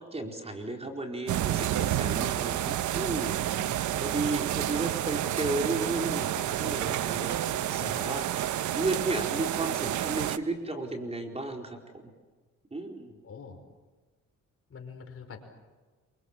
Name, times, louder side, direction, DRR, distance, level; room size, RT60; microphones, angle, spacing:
voice 1, 0.0-8.2 8.5-12.1 12.7-13.1, right 2 dB, 20° right, 2 dB, 4.5 m, -34 dB
sound 1, 1.3-10.4, right 12 dB, 75° right, 1.1 m, -30 dB
voice 2, 3.5-4.1 7.8-8.1 13.2-13.6 14.7-15.5, left 6 dB, 50° left, 5 dB, 5.3 m, -45 dB
27.5 x 25.0 x 7.4 m, 1.3 s
cardioid pair, 90°, 30 cm